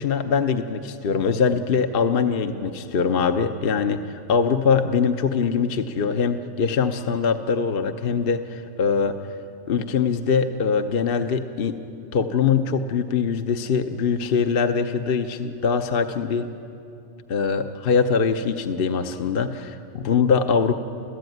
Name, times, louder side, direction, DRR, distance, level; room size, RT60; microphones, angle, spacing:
voice 1, 0.0-9.2 9.7-11.8 12.1-16.5 17.3-20.7, left 5 dB, 50° left, 7 dB, 1.0 m, -22 dB
29.0 x 15.0 x 9.3 m, 2.7 s
omnidirectional pair, 1.3 m